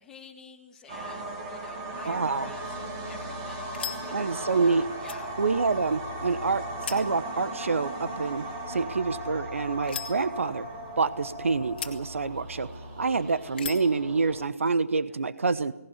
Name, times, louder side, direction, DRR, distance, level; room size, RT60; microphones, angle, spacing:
voice 1, 0.0-5.3 15.0-15.2, left 5 dB, 5° left, -1 dB, 2.3 m, -50 dB
sound 1, 0.9-14.5, right 1 dB, 20° right, 2.9 m, -37 dB
voice 2, 2.0-2.5 4.1-4.8 5.4-10.7 11.0-12.7 13.0-15.7, right 4 dB, 60° right, 14 dB, 1.1 m, -27 dB
sound 2, 2.6-14.0, left 7 dB, 40° left, 2.2 m, -44 dB
18.5 x 18.0 x 9.8 m, 0.87 s
figure-of-eight pair, 155°, 8 cm